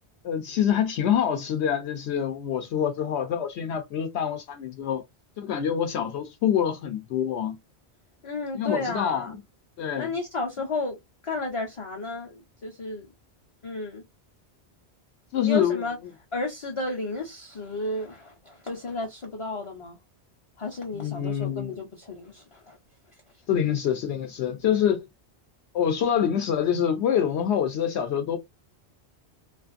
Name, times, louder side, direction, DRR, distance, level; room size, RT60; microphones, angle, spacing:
voice 1, 0.2-5.0 5.4-7.6 8.5-9.3 9.8-10.1 15.3-15.9 21.0-21.8 23.5-25.1 25.7-28.4, left 9 dB, 75° left, 0.8 m, -26 dB
voice 2, 8.2-9.4 10.0-13.1 13.6-14.0 15.4-16.0 16.3-20.0 20.6-22.8, left 2 dB, 40° left, 0.5 m, -33 dB
2.5 x 2.4 x 2.4 m
omnidirectional pair, 1.2 m